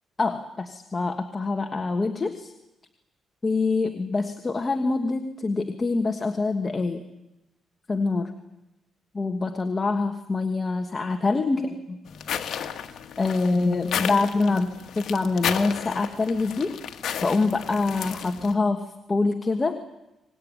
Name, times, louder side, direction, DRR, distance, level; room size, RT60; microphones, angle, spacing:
voice 1, 0.2-2.5 3.4-7.1 7.9-8.3 9.1-12.0 13.2-16.8 17.2-19.8, left 3 dB, 25° left, 6 dB, 1.5 m, -25 dB
sound 1, 12.1-18.5, left 8 dB, 65° left, 1.7 m, -33 dB
25.0 x 20.0 x 9.6 m, 0.95 s
cardioid pair, 115°, 0 cm